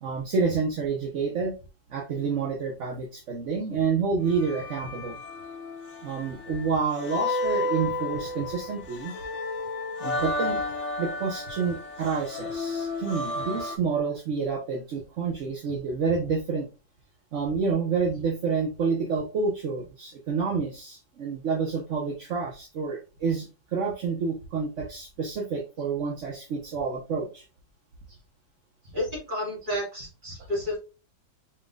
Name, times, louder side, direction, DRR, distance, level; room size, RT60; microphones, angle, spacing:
voice 1, 0.0-1.5 1.9-5.2 6.0-9.1 10.0-10.6 11.0-16.7 17.3-27.4 28.1-28.2, right 5 dB, 50° right, 0 dB, 1.0 m, -29 dB
sound 1, 4.3-13.8, left 2 dB, 50° left, 1.0 m, -32 dB
voice 2, 28.9-30.8, left 1 dB, 25° right, -3 dB, 2.2 m, -31 dB
5.0 x 3.6 x 2.3 m, 0.31 s
omnidirectional pair, 2.0 m